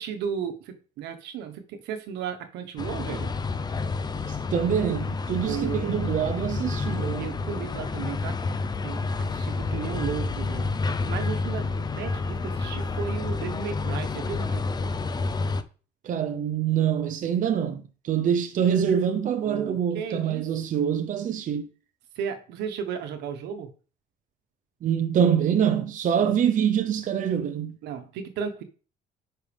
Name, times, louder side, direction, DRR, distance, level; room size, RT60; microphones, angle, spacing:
voice 1, 0.0-3.3 5.4-6.0 7.0-8.4 8.8-10.7 11.1-14.6 19.4-20.5 22.1-23.7 26.1-26.3 27.8-28.6, right 7 dB, 85° right, 1.4 m, -34 dB
sound 1, 2.8-15.6, left 3 dB, 25° left, 0.8 m, -29 dB
voice 2, 4.3-7.3 16.0-21.7 24.8-27.8, right 8 dB, 50° right, 0.9 m, -25 dB
10.0 x 5.8 x 3.5 m
cardioid pair, 110°, 17 cm